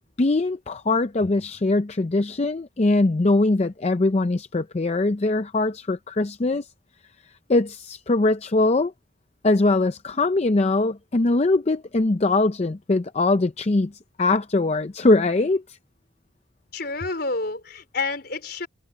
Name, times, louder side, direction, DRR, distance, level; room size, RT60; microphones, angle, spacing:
voice 1, 0.2-6.6 7.5-8.9 9.4-13.9 14.2-15.6, left 2 dB, 35° left, 0.5 m, -21 dB
voice 2, 16.7-18.7, left 3 dB, 60° left, 4.7 m, -29 dB
head